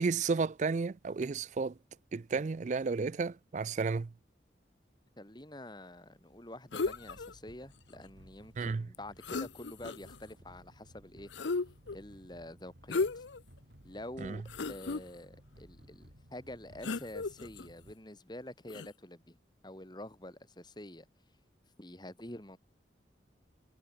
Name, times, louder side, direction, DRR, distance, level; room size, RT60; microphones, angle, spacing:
voice 1, 0.0-1.7 2.1-4.1 8.6-8.9 14.2-14.4, right 4 dB, 40° right, 0.4 m, -32 dB
voice 2, 5.2-11.3 11.9-13.2 13.8-19.4 19.6-21.1 21.8-22.6, left 1 dB, 25° left, 3.8 m, -47 dB
sound 1, 6.1-17.9, equal, 80° right, 4.6 m, -58 dB
sound 2, 6.7-7.3 8.9-9.0 9.2-10.2 11.3-12.0 12.9-13.4 13.9-14.0 14.5-15.0 16.8-17.7 18.7-18.9, left 3 dB, 90° left, 0.7 m, -35 dB
head